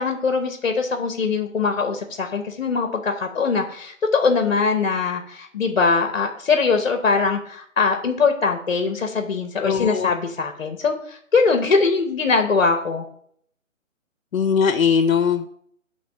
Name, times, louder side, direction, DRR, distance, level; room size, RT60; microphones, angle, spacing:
voice 1, 0.0-10.9 11.3-13.0, left 4 dB, 45° left, 5 dB, 0.8 m, -21 dB
voice 2, 9.6-10.1 14.3-15.5, left 6 dB, 80° left, 10 dB, 0.6 m, -20 dB
8.6 x 3.1 x 5.7 m, 0.66 s
figure-of-eight pair, 155°, 40 cm